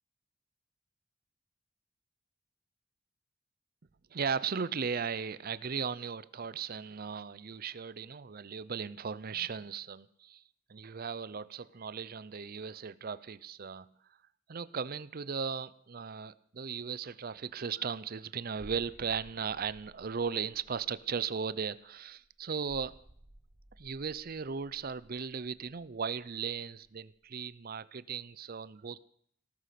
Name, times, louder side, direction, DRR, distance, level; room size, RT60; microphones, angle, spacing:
voice 1, 4.1-10.4 10.7-13.9 14.5-22.9 23.8-29.0, right 6 dB, 50° right, 17 dB, 0.6 m, -37 dB
sound 1, 18.6-27.0 27.2-27.4, right 1 dB, 30° right, 1.0 m, -57 dB
18.0 x 13.5 x 5.9 m, 0.67 s
head